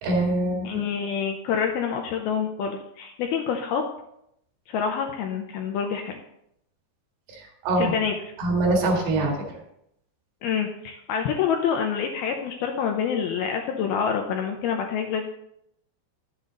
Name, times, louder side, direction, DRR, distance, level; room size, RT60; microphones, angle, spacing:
voice 1, 0.0-0.9 7.3-7.9 8.4-9.3, right 2 dB, 65° right, 0 dB, 3.6 m, -24 dB
voice 2, 0.6-3.8 4.7-6.2 7.8-8.1 10.4-15.3, left 7 dB, 80° left, 3 dB, 2.3 m, -27 dB
11.5 x 7.7 x 3.9 m, 0.76 s
omnidirectional pair, 5.1 m